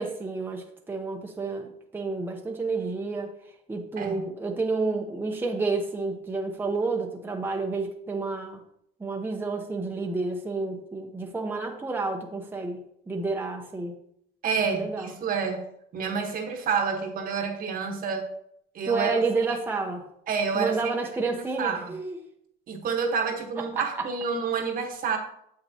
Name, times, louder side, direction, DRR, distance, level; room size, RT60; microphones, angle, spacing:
voice 1, 0.0-3.3 3.7-8.6 9.0-13.9 14.7-15.1 18.9-20.1 20.5-22.2 23.6-24.1, right 3 dB, 10° right, 2 dB, 0.7 m, -30 dB
voice 2, 14.4-15.6 15.9-18.3 18.7-19.2 19.5-19.6 20.3-20.9 21.2-21.9 22.7-25.2, right 6 dB, 55° right, 4 dB, 1.2 m, -29 dB
7.5 x 5.9 x 2.8 m, 0.74 s
cardioid pair, 110°, 17 cm